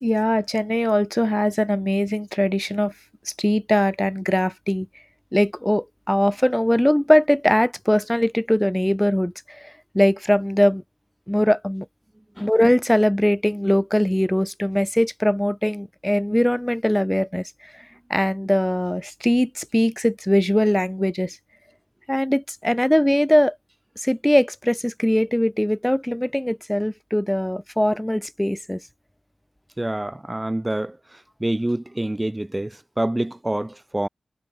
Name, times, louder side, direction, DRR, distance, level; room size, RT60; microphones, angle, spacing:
voice 1, 0.0-2.9 3.2-4.9 5.3-10.8 11.3-11.9 12.4-17.7 18.1-21.4 22.1-23.6 24.0-28.8, equal, 5° left, 1.0 m, -21 dB
voice 2, 29.8-31.0 31.4-34.1, right 1 dB, 15° right, 0.5 m, -26 dB
wide cardioid pair, 100°, 0 cm